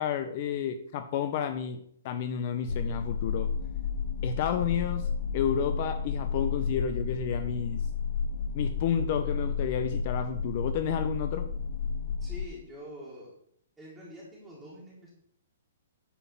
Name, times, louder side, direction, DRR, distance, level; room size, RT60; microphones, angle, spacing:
voice 1, 0.0-3.5 4.2-7.8 8.5-11.5, left 8 dB, 30° left, 9 dB, 0.5 m, -31 dB
sound 1, 2.7-12.5, left 5 dB, 80° left, 0.7 m, -32 dB
voice 2, 12.2-13.3 13.8-15.1, equal, 5° right, -7 dB, 1.8 m, -45 dB
9.9 x 3.8 x 7.0 m, 0.65 s
hypercardioid pair, 175°, 0 cm